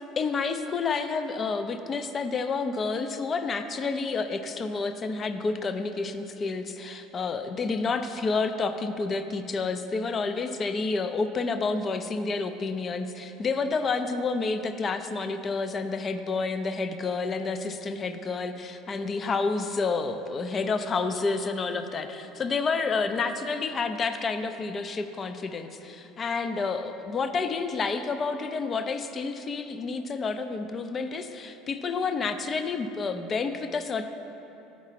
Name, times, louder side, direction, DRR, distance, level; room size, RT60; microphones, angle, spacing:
voice 1, 0.2-34.1, left 4 dB, 35° left, 9 dB, 0.5 m, -29 dB
7.2 x 5.6 x 5.7 m, 3.0 s
supercardioid pair, 90°, 0 cm